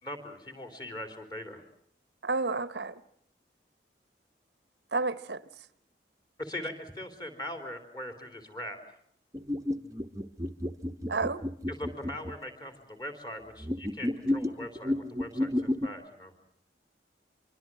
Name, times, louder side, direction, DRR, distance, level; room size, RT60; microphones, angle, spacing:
voice 1, 0.0-1.6 6.4-8.8 11.7-16.3, left 1 dB, 25° left, 3.6 m, -41 dB
voice 2, 2.2-3.0 4.9-5.4 11.1-11.4, right 3 dB, 75° right, 0.9 m, -30 dB
sound 1, 9.3-12.3 13.6-15.9, left 1 dB, 20° right, 1.0 m, -31 dB
25.0 x 23.5 x 7.6 m
head